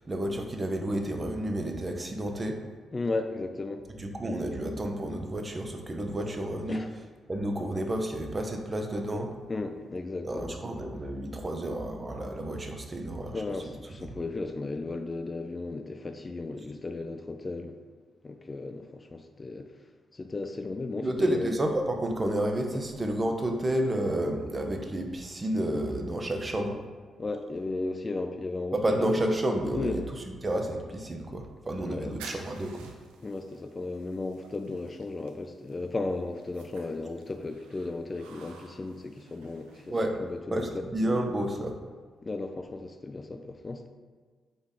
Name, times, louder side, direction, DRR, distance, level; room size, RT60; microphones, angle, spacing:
voice 1, 0.0-2.6 4.0-6.8 7.3-9.3 10.2-13.4 21.0-26.8 28.7-32.9 39.9-40.2 40.5-41.8, right 1 dB, 30° right, 3 dB, 0.6 m, -30 dB
voice 2, 2.9-3.8 6.7-6.9 9.5-10.6 13.3-17.8 18.2-19.7 20.1-21.5 22.7-22.8 27.2-29.1 29.7-30.1 31.8-32.1 33.2-39.9 40.2-40.9 42.2-43.9, left 3 dB, 35° left, 7 dB, 0.3 m, -35 dB
sound 1, 31.7-40.4, right 4 dB, 80° right, 0.4 m, -52 dB
3.9 x 3.0 x 3.7 m, 1.5 s
hypercardioid pair, 40°, 0 cm